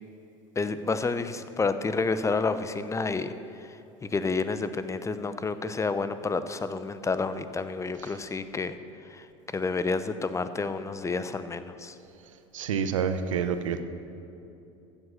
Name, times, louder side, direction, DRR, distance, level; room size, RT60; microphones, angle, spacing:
voice 1, 0.5-8.8 9.0-12.0, left 4 dB, 20° left, 12 dB, 0.8 m, -30 dB
voice 2, 12.5-13.8, right 7 dB, 85° right, 9 dB, 0.8 m, -28 dB
14.0 x 7.8 x 6.7 m, 2.8 s
hypercardioid pair, 75°, 16 cm